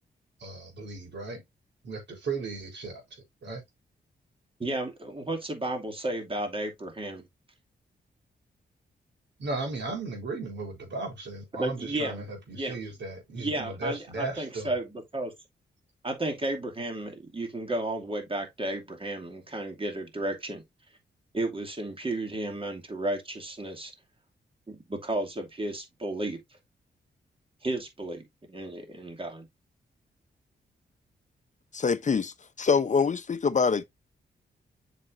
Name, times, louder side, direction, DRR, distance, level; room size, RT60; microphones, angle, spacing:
voice 1, 0.4-1.4 1.8-3.6 9.4-14.7, right 3 dB, 80° right, 3.9 m, -36 dB
voice 2, 4.6-7.3 11.6-12.2 12.5-12.8 13.4-15.3 16.0-20.6 21.3-23.9 24.7-26.4 27.6-29.5, right 1 dB, 30° right, 2.5 m, -33 dB
voice 3, 31.7-33.8, left 5 dB, 40° left, 0.7 m, -25 dB
7.4 x 5.9 x 2.6 m
cardioid pair, 65°, 18 cm